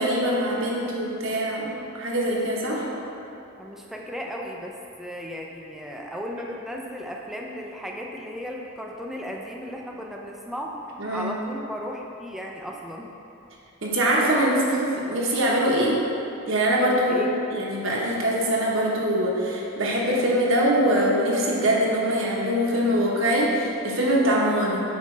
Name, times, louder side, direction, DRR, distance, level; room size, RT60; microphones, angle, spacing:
voice 1, 0.0-2.9 11.0-11.3 13.8-16.0 16.5-17.2 17.5-24.8, right 1 dB, 70° right, -3 dB, 1.2 m, -23 dB
voice 2, 3.6-10.8 11.1-13.1 17.1-17.3, equal, ahead, -1 dB, 0.5 m, -35 dB
8.2 x 5.2 x 3.3 m, 2.9 s
head